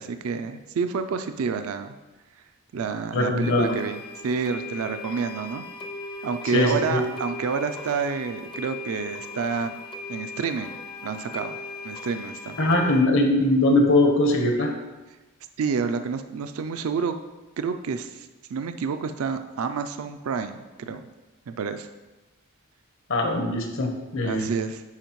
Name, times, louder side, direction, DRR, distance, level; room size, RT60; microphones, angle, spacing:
voice 1, 0.0-1.9 2.7-4.0 4.2-5.6 6.2-9.7 10.1-10.8 11.0-11.6 11.8-12.6 15.6-17.2 17.6-21.1 21.5-21.9 24.2-24.8, right 5 dB, 65° right, 9 dB, 0.4 m, -29 dB
voice 2, 3.1-3.7 6.5-7.0 12.6-14.7 23.1-24.5, left 2 dB, 60° left, 3 dB, 1.0 m, -21 dB
sound 1, 3.4-13.0, left 3 dB, 20° left, 0.5 m, -38 dB
10.5 x 4.4 x 3.0 m, 1.1 s
head